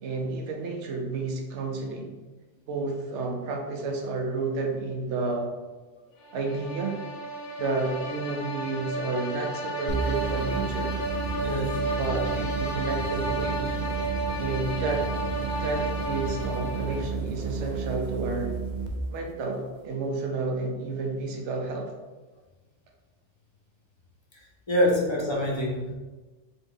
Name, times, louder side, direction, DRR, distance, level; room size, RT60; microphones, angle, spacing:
voice 1, 0.0-2.1 2.7-5.5 6.3-7.0 7.6-10.9 12.0-13.7 14.4-15.0 15.6-18.5 19.1-21.9, right 3 dB, 75° right, 1 dB, 1.0 m, -31 dB
sound 1, 6.2-17.2, right 1 dB, 65° left, 0.9 m, -33 dB
sound 2, 9.9-19.0, right 4 dB, 50° right, 0.6 m, -32 dB
voice 2, 11.4-12.0 15.5-15.6 24.7-25.9, equal, 30° left, -2 dB, 0.7 m, -26 dB
3.7 x 3.0 x 3.8 m, 1.2 s
omnidirectional pair, 1.2 m